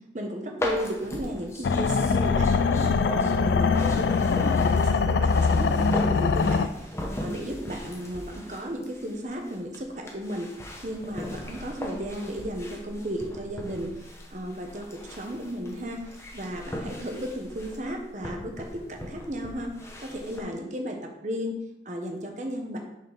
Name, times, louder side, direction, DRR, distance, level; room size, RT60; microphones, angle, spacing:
voice 1, 0.1-10.5 10.8-13.9 14.3-14.8 15.2-19.7 20.0-21.0 21.2-22.8, equal, 40° right, 3 dB, 1.1 m, -34 dB
sound 1, 0.6-20.4, left 1 dB, 15° left, 1.0 m, -39 dB
sound 2, 1.6-6.7, left 4 dB, 70° left, 0.4 m, -22 dB
6.4 x 4.4 x 5.5 m, 0.91 s
head